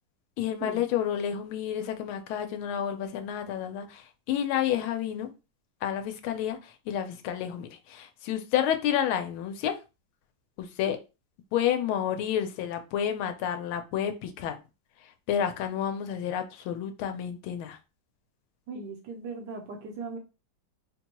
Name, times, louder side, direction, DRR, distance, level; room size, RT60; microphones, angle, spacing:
voice 1, 0.4-5.3 5.8-9.7 10.6-11.0 11.5-14.6 15.3-17.8, left 9 dB, 90° left, 1.5 m, -30 dB
voice 2, 18.7-20.2, right 4 dB, 65° right, 1.2 m, -38 dB
4.3 x 2.2 x 2.9 m
omnidirectional pair, 2.2 m